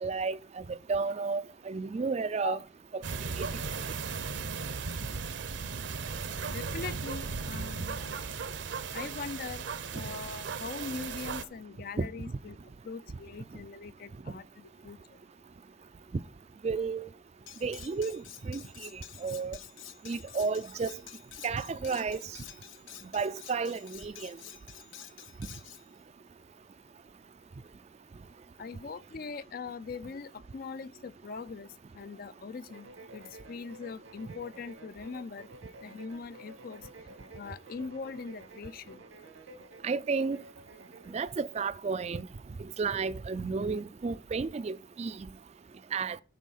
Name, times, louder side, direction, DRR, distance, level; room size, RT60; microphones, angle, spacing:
voice 1, 0.0-2.6 2.9-3.0 3.4-3.5 12.0-12.1 16.6-17.1 17.6-19.6 20.0-21.0 21.4-22.2 23.1-24.4 39.8-40.4 41.1-42.3 42.8-45.3 45.9-46.2, right 4 dB, 35° right, 0.3 m, -32 dB
sound 1, 3.0-11.4, right 5 dB, 65° right, 0.7 m, -36 dB
voice 2, 6.5-8.2 8.9-9.7 9.9-12.6 12.8-15.0 28.6-35.5 35.8-36.9 37.3-39.0, left 5 dB, 45° left, 0.4 m, -41 dB
Cutlery silverware, 17.5-25.8, left 11 dB, 80° left, 0.7 m, -49 dB
sound 2, 32.7-41.2, right 2 dB, 85° right, 1.2 m, -52 dB
9.2 x 4.6 x 6.4 m
head